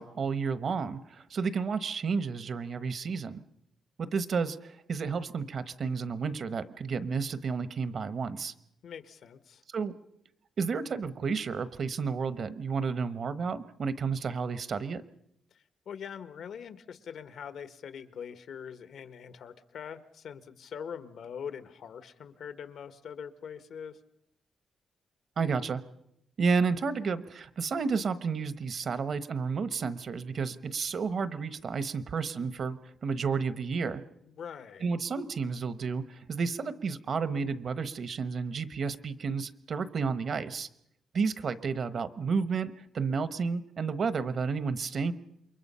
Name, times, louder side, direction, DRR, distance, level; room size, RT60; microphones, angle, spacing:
voice 1, 0.0-3.4 4.0-8.5 9.7-10.0 10.6-15.0 25.4-25.8 26.4-34.0 34.8-40.7 41.1-45.1, right 5 dB, 55° right, 14 dB, 1.1 m, -31 dB
voice 2, 8.8-9.6 15.5-24.0 34.2-34.9, left 7 dB, 80° left, 11 dB, 1.5 m, -43 dB
28.0 x 23.0 x 5.6 m, 0.78 s
wide cardioid pair, 135°, 0 cm